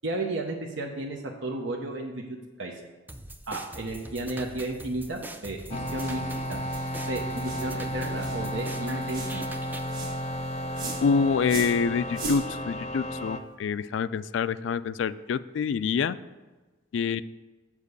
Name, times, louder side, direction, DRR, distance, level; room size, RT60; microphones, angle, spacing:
voice 1, 0.0-2.7 3.5-6.2 6.5-6.6 7.1-9.5, right 2 dB, 80° right, 1 dB, 0.8 m, -33 dB
sound 1, 3.1-9.9, right 1 dB, 10° right, 0.4 m, -43 dB
sound 2, 5.7-13.4, equal, 35° left, 0.6 m, -33 dB
sound 3, 6.0-6.2 6.7-6.9 7.4-7.7 8.2-8.4 9.1-9.4 9.9-10.2 10.7-11.0 11.5-11.8 12.1-12.4, right 3 dB, 50° right, 1.6 m, -37 dB
voice 2, 11.0-16.2 16.9-17.2, left 6 dB, 75° left, 15 dB, 0.3 m, -26 dB
7.3 x 4.7 x 6.6 m, 1.2 s
head